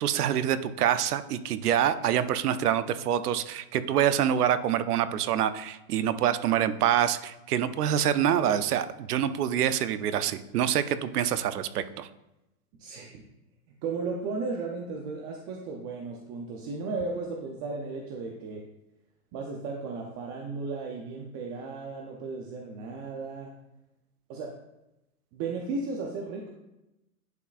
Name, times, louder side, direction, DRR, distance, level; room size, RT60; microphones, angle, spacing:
voice 1, 0.0-12.1, right 10 dB, 85° right, 13 dB, 0.7 m, -26 dB
voice 2, 12.8-13.2 13.8-18.6 19.3-23.5 24.3-24.6 25.3-26.5, right 4 dB, 30° right, 0 dB, 0.6 m, -35 dB
10.5 x 4.6 x 2.5 m, 0.94 s
hypercardioid pair, 135°, 45 cm